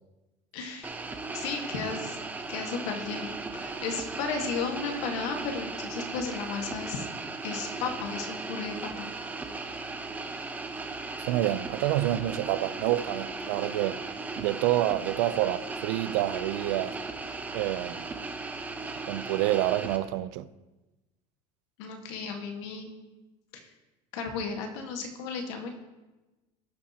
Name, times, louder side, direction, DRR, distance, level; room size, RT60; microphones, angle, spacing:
voice 1, 0.5-1.0 1.3-2.2 2.5-7.1 7.4-9.1 21.8-22.9 23.5-23.6 24.1-25.7, left 5 dB, 85° left, 1.6 m, -34 dB
sound 1, 0.8-20.0, right 3 dB, 10° right, 0.7 m, -37 dB
voice 2, 11.3-14.0 14.4-17.0 17.5-18.0 19.1-20.5, right 15 dB, 85° right, 0.5 m, -28 dB
17.5 x 7.2 x 2.9 m
cardioid pair, 150°, 14 cm